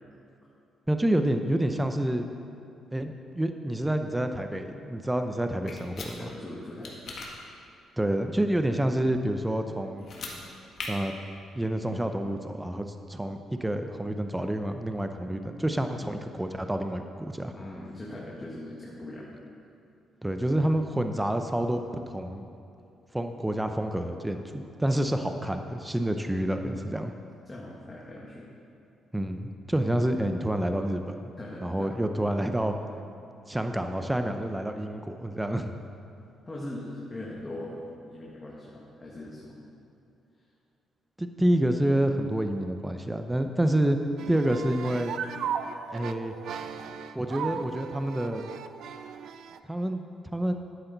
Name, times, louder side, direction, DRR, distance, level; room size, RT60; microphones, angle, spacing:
voice 1, 0.9-2.3 2.9-6.3 8.0-10.1 10.9-11.1 11.6-17.5 20.2-22.5 23.1-27.1 29.1-31.3 31.6-32.8 33.5-35.7 41.2-44.0 44.3-45.1 45.9-46.3 47.1-48.4 49.7-50.1 50.3-50.5, right 1 dB, 10° right, 6 dB, 0.6 m, -28 dB
sound 1, 5.7-6.1 6.8-7.3 10.0-10.4 10.8-10.9, left 4 dB, 55° left, 1.7 m, -38 dB
voice 2, 6.2-7.0 17.5-19.3 27.5-28.5 31.4-31.9 36.5-39.6, left 1 dB, 20° left, -5 dB, 1.5 m, -40 dB
sound 2, 44.2-49.6, right 7 dB, 70° right, 0.4 m, -36 dB
11.0 x 8.8 x 4.0 m, 2.7 s
cardioid pair, 90°, 0 cm